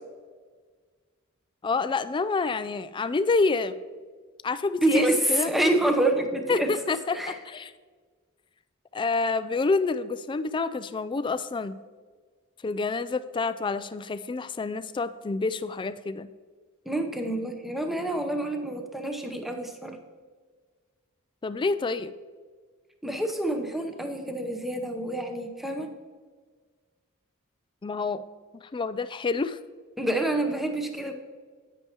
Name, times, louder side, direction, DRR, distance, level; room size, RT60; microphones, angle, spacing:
voice 1, 1.6-3.8 4.4-5.5 6.5-7.7 8.9-11.7 12.6-16.3 21.4-22.1 27.8-28.2 28.6-29.6, left 4 dB, 25° left, 13 dB, 0.3 m, -28 dB
voice 2, 4.8-6.7 7.1-7.4 16.9-20.0 23.0-25.9 30.0-31.1, right 1 dB, ahead, 4 dB, 0.8 m, -27 dB
10.0 x 9.1 x 2.9 m, 1.5 s
head